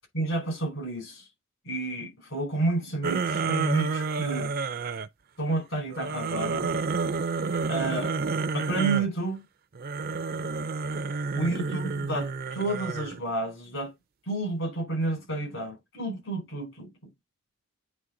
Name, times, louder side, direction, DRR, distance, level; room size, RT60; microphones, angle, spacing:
voice 1, 0.1-1.2 1.6-4.5 5.4-6.7 7.7-8.2 8.5-9.4 11.3-13.9 14.3-16.9, right 2 dB, 70° left, 4.6 m, -30 dB
sound 1, 3.0-5.1 5.9-9.1 9.8-13.2, right 4 dB, 45° right, 0.5 m, -30 dB
9.3 x 3.3 x 3.7 m
head